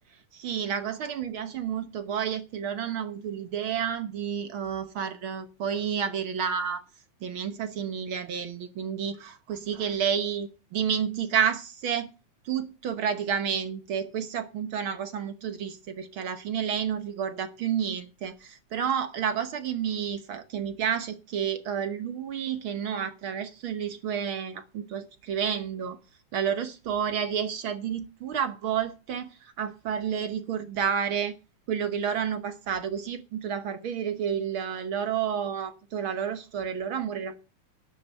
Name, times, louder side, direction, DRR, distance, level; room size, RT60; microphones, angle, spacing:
voice 1, 0.3-6.8 7.2-12.1 12.4-26.0 26.3-31.3 31.7-37.4, right 8 dB, 60° right, 1.4 m, -30 dB
12.0 x 7.2 x 6.6 m
omnidirectional pair, 3.5 m